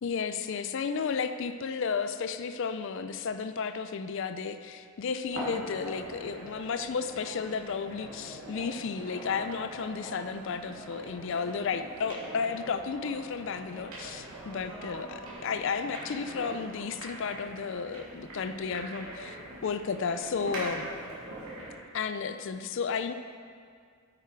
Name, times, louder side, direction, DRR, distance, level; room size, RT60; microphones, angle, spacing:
voice 1, 0.0-19.4 19.6-20.9 21.9-23.1, left 5 dB, 60° left, 10 dB, 0.4 m, -33 dB
sound 1, 5.3-21.8, right 1 dB, 85° right, 2.7 m, -43 dB
9.2 x 8.8 x 4.6 m, 2.1 s
head